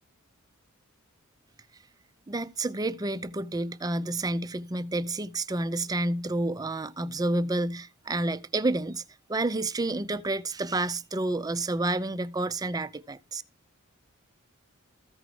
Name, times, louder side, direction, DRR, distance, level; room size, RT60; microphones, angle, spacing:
voice 1, 2.3-9.0 9.3-13.4, right 2 dB, 15° right, 0.4 m, -29 dB
14.5 x 5.0 x 4.8 m
head